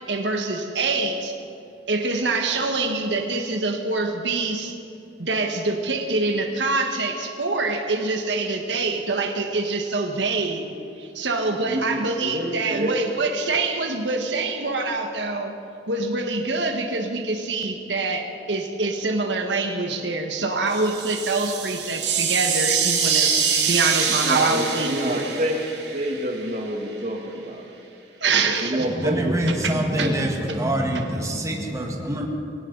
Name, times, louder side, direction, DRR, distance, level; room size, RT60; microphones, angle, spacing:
voice 1, 0.1-1.4 1.9-4.7 5.2-10.7 11.0-15.5 15.9-23.3 23.7-25.2 28.2-28.8 29.6-29.7 30.0-30.1, right 3 dB, 90° right, 3 dB, 1.6 m, -25 dB
voice 2, 11.6-12.9 24.2-25.6 25.9-27.6 28.6-30.9, right 1 dB, 45° right, 3 dB, 1.8 m, -28 dB
sound 1, 20.7-26.6, right 6 dB, 70° right, 2.3 m, -25 dB
voice 3, 28.9-32.3, right 1 dB, 20° right, 1 dB, 1.6 m, -25 dB
20.5 x 17.5 x 4.0 m, 2.7 s
head